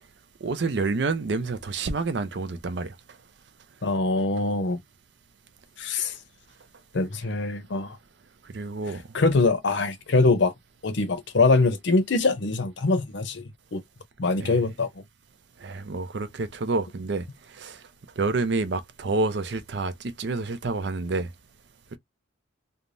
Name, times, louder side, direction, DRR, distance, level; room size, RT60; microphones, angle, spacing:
voice 1, 0.4-2.9 8.5-9.0 14.4-14.6 15.6-17.2 17.6-17.8 18.2-21.3 21.9-22.0, right 3 dB, 60° right, 0.5 m, -28 dB
voice 2, 3.8-4.8 5.8-6.1 6.9-8.0 9.1-10.5 10.8-13.4 13.7-13.8 14.2-14.9, left 3 dB, 65° left, 0.6 m, -23 dB
3.3 x 2.1 x 2.5 m
head